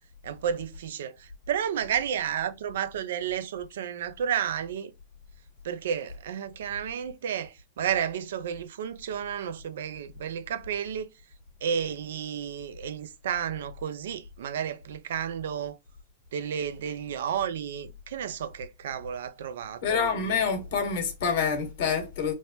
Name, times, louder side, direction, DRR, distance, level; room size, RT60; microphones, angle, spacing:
voice 1, 0.2-4.9 5.6-11.1 11.6-15.8 16.3-20.4, right 8 dB, 70° right, 0.4 m, -32 dB
voice 2, 19.8-22.3, left 6 dB, 60° left, 1.2 m, -27 dB
3.0 x 2.0 x 2.9 m
hypercardioid pair, 105°, 0 cm